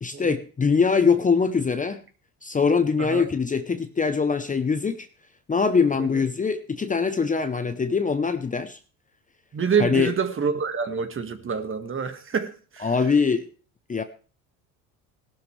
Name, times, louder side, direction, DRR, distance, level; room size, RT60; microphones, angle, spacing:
voice 1, 0.0-2.0 2.4-5.1 5.5-8.8 9.8-10.1 12.8-13.5 13.9-14.0, left 5 dB, 20° left, 9 dB, 0.9 m, -23 dB
voice 2, 9.5-12.9, right 6 dB, 30° right, 8 dB, 1.8 m, -27 dB
17.0 x 12.0 x 3.4 m, 0.37 s
supercardioid pair, 85°, 40 cm